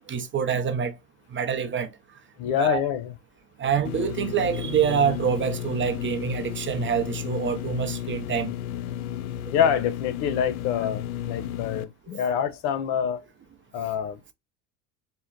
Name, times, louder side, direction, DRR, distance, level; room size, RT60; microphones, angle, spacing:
voice 1, 0.1-1.0 1.3-2.0 2.6-2.8 3.6-8.6, right 7 dB, 30° right, 0.7 m, -26 dB
voice 2, 2.4-3.1 9.5-13.2 13.7-14.3, left 8 dB, 65° left, 0.9 m, -26 dB
sound 1, 3.8-11.8, left 11 dB, 90° left, 0.5 m, -33 dB
4.2 x 2.2 x 3.8 m
supercardioid pair, 95°, 42 cm